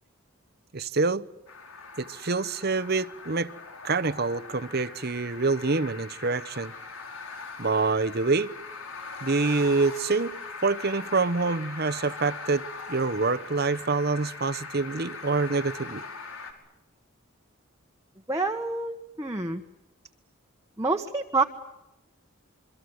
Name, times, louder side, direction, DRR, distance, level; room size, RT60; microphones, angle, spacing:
voice 1, 0.7-1.3 2.0-3.5 3.8-6.7 7.6-8.5 9.2-10.3 10.6-16.0, right 3 dB, 50° right, 0.9 m, -26 dB
sound 1, 1.5-16.5, left 4 dB, 80° left, 5.3 m, -41 dB
voice 2, 18.3-19.6 20.8-21.4, right 3 dB, 15° right, 1.3 m, -27 dB
27.5 x 24.0 x 7.9 m
head